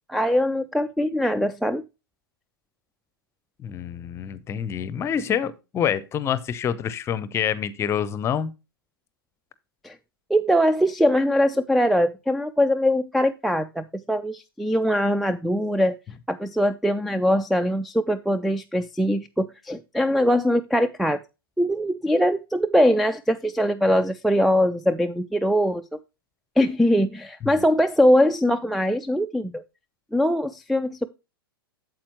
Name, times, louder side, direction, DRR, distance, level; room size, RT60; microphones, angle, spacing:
voice 1, 0.1-1.8 9.8-10.0 10.3-16.0 16.3-21.2 21.6-25.8 26.6-29.6 30.1-31.1, equal, ahead, 0.3 m, -22 dB
voice 2, 3.6-8.5 27.4-27.6, left 8 dB, 20° left, 0.7 m, -27 dB
8.6 x 7.7 x 3.0 m
figure-of-eight pair, 100°, 12 cm